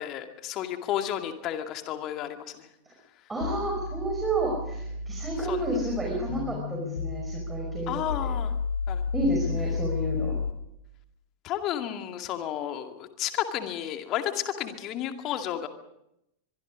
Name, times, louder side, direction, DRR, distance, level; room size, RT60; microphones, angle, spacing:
voice 1, 0.0-2.4 5.5-5.6 7.9-8.5 8.9-9.0 11.4-15.7, left 11 dB, 35° left, 6 dB, 2.2 m, -32 dB
voice 2, 3.3-8.3 9.1-10.3, right 1 dB, 10° right, -1 dB, 5.2 m, -30 dB
sound 1, 3.4-10.5, left 4 dB, 70° left, 2.6 m, -32 dB
23.5 x 23.5 x 5.0 m, 0.82 s
figure-of-eight pair, 90°, 0 cm